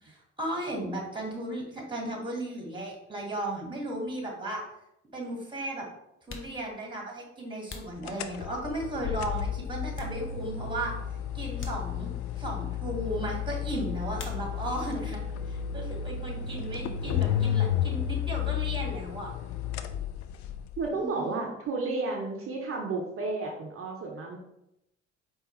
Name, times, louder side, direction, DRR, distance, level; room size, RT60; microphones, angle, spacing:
voice 1, 0.0-4.6 5.1-5.9 6.3-10.9 11.3-12.1 12.4-19.3 20.9-21.5, right 1 dB, 15° right, 0 dB, 1.6 m, -35 dB
sound 1, 6.2-8.8 9.3-10.7 10.9-11.1 11.5-12.4 14.1-14.9 15.2-15.9 16.1-18.3, left 4 dB, 35° left, 0.8 m, -48 dB
sound 2, 8.0-20.9, left 9 dB, 55° left, 0.4 m, -32 dB
voice 2, 20.8-24.4, right 3 dB, 40° right, 0 dB, 0.8 m, -32 dB
4.5 x 3.0 x 3.1 m, 0.81 s
figure-of-eight pair, 50°, 34 cm